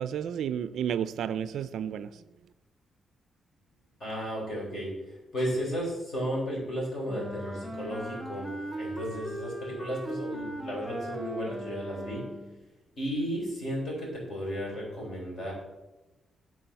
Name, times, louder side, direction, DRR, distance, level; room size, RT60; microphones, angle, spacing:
voice 1, 0.0-2.2, right 9 dB, 75° right, 14 dB, 0.3 m, -32 dB
voice 2, 4.0-12.3 13.0-15.5, equal, 40° left, -2 dB, 3.8 m, -34 dB
Wind instrument woodwind instrument, 7.1-12.6, right 1 dB, ahead, 0.6 m, -39 dB
12.0 x 4.8 x 5.6 m, 1.0 s
wide cardioid pair, 175°, 0 cm